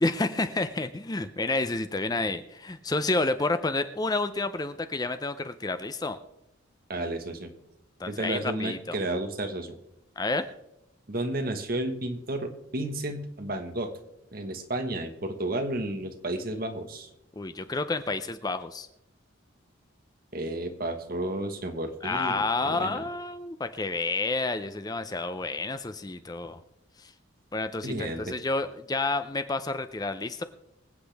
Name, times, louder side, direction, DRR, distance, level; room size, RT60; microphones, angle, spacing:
voice 1, 0.0-6.2 8.0-9.0 10.2-10.5 17.4-18.9 22.0-26.6 27.0-27.1 27.5-30.4, left 3 dB, 20° left, 10 dB, 0.5 m, -30 dB
voice 2, 6.9-7.5 8.1-9.8 11.1-13.9 14.3-17.1 20.3-23.0 27.8-28.3, right 1 dB, 45° right, 6 dB, 1.3 m, -32 dB
24.5 x 8.2 x 3.5 m, 0.86 s
head